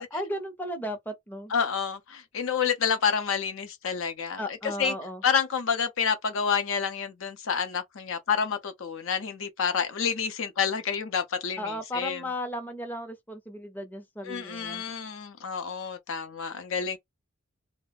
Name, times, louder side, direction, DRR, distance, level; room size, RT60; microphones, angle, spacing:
voice 1, 0.0-1.5 4.4-5.2 11.6-14.8, left 1 dB, 10° left, 0.6 m, -35 dB
voice 2, 1.5-4.9 5.2-12.2 14.3-17.0, left 6 dB, 65° left, 0.6 m, -29 dB
2.3 x 2.1 x 3.2 m
head